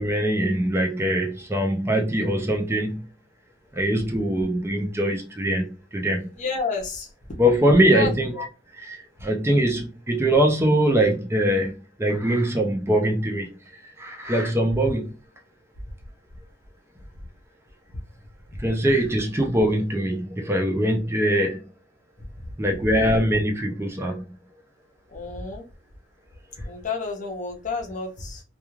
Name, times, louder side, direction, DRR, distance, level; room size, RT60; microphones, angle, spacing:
voice 1, 0.0-3.1 3.7-6.3 7.4-8.3 8.7-15.1 18.6-21.6 22.6-24.2, right 1 dB, 10° right, 0.4 m, -22 dB
voice 2, 6.4-7.1 7.9-8.4 18.5-18.6 25.1-25.6 26.6-28.4, left 4 dB, 35° left, 0.6 m, -30 dB
2.3 x 2.3 x 3.0 m
head